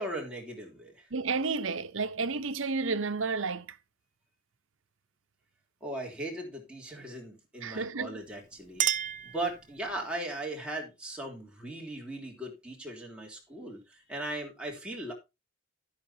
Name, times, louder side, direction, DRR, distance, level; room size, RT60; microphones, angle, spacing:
voice 1, 0.0-1.1 5.8-15.1, right 1 dB, 5° right, 3.3 m, -38 dB
voice 2, 1.1-3.8 7.6-8.2, right 4 dB, 75° right, 0.9 m, -31 dB
Chink clink, 8.2-10.1, right 10 dB, 40° right, 0.6 m, -33 dB
12.0 x 10.5 x 2.8 m
head